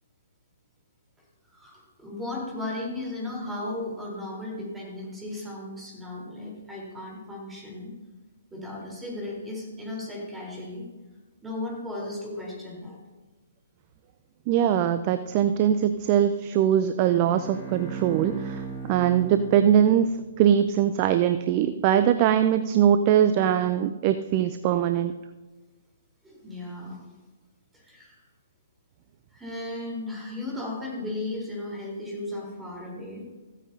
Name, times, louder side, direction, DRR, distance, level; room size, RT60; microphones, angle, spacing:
voice 1, 1.5-7.9 8.5-10.9 11.4-13.0 19.0-19.3 26.2-27.0 27.7-28.2 29.3-33.2, left 2 dB, 10° right, -3 dB, 3.9 m, -35 dB
voice 2, 14.5-20.1 20.4-25.1, right 10 dB, 35° right, 10 dB, 0.4 m, -22 dB
Bowed string instrument, 17.0-20.5, right 6 dB, 20° left, 1.9 m, -38 dB
15.5 x 9.1 x 2.8 m, 1.2 s
figure-of-eight pair, 125°, 0 cm